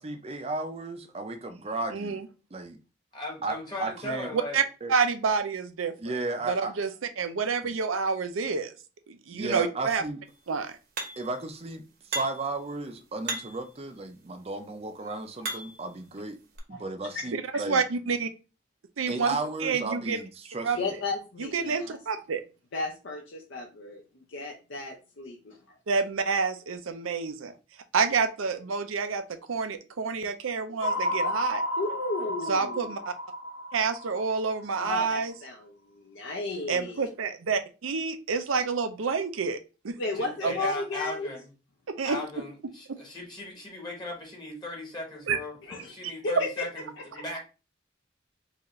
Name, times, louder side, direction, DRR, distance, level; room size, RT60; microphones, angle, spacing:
voice 1, 0.0-2.2 2.5-2.8 3.4-4.3 4.8-4.9 6.0-6.7 7.6-7.7 9.3-10.2 11.2-16.4 16.7-17.8 19.1-20.9, right 3 dB, 30° right, 7 dB, 0.5 m, -34 dB
voice 2, 1.9-2.2 4.5-4.6 4.9-6.1 6.5-6.9 7.2-8.7 9.1-10.0 10.5-10.7 17.3-18.3 19.0-19.3 19.6-20.2 20.6-20.8 21.4-22.4 25.9-27.5 27.9-29.2 29.5-31.6 32.5-33.1 33.7-35.3 36.7-39.6 39.8-40.0 40.4-40.5 41.9-42.2 45.3-45.4, right 5 dB, 85° right, 9 dB, 0.6 m, -28 dB
voice 3, 3.1-4.6 40.1-41.5 42.0-47.4, left 2 dB, 20° left, 0 dB, 1.0 m, -38 dB
sound 1, 11.0-11.4 12.1-12.6 13.3-13.7 14.5-15.9 16.6-16.7, right 2 dB, 50° right, 0.9 m, -36 dB
voice 4, 16.7-17.2 20.8-22.0 22.7-25.6 31.8-33.0 34.8-37.1 40.0-41.3 45.6-45.9 46.2-46.6 47.1-47.2, left 3 dB, 65° left, 0 dB, 0.7 m, -34 dB
sound 2, 30.8-35.1, left 1 dB, 85° left, 1.0 m, -32 dB
4.7 x 2.5 x 3.0 m, 0.31 s
head